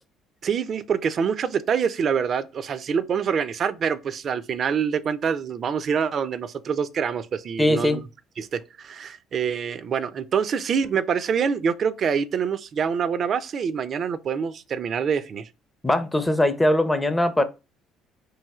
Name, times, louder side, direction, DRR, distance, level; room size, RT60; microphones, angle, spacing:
voice 1, 0.4-8.0 8.4-15.5, right 7 dB, 50° right, 0.3 m, -26 dB
voice 2, 7.6-8.0 15.8-17.4, left 1 dB, 10° left, 0.4 m, -21 dB
3.1 x 2.6 x 2.3 m
hypercardioid pair, 65°, 0 cm